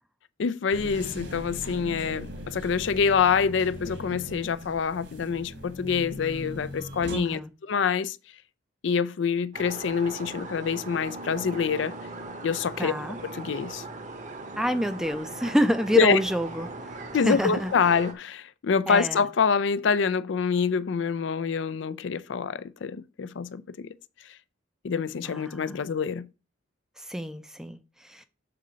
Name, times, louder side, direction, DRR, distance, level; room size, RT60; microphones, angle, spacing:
voice 1, 0.4-7.4 7.7-8.2 8.8-11.9 12.4-12.9 13.2-13.8 16.0-16.2 17.1-23.9 24.8-26.3, left 6 dB, 70° left, 0.4 m, -26 dB
sound 1, 0.7-7.2, equal, 65° right, 1.7 m, -39 dB
voice 2, 7.1-7.5 12.8-13.2 14.6-17.7 18.9-19.3 25.2-25.8 27.0-28.2, equal, 5° right, 0.4 m, -28 dB
sound 2, 9.5-18.1, right 2 dB, 35° right, 0.9 m, -39 dB
6.8 x 3.8 x 5.0 m
head